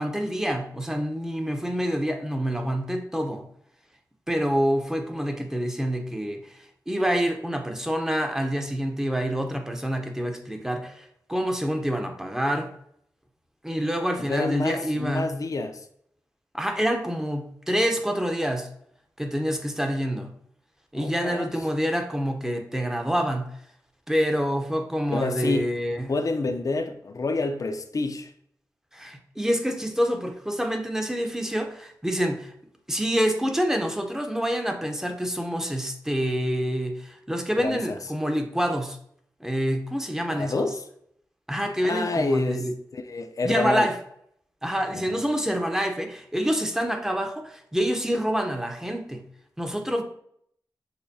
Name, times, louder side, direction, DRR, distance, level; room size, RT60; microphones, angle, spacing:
voice 1, 0.0-3.4 4.3-12.7 13.6-15.3 16.5-18.7 19.2-20.3 20.9-23.5 24.1-26.1 28.9-32.5 32.9-39.0 39.4-40.7 41.5-42.7 43.4-44.0 44.6-49.2 49.6-50.0, equal, 5° right, 0.7 m, -27 dB
voice 2, 14.2-15.9 20.9-21.7 25.1-25.7 26.1-28.3 37.6-38.0 40.3-40.9 41.8-42.6 42.9-43.9 44.9-45.3, left 3 dB, 55° left, 0.5 m, -28 dB
6.5 x 2.2 x 2.7 m
cardioid pair, 50°, 7 cm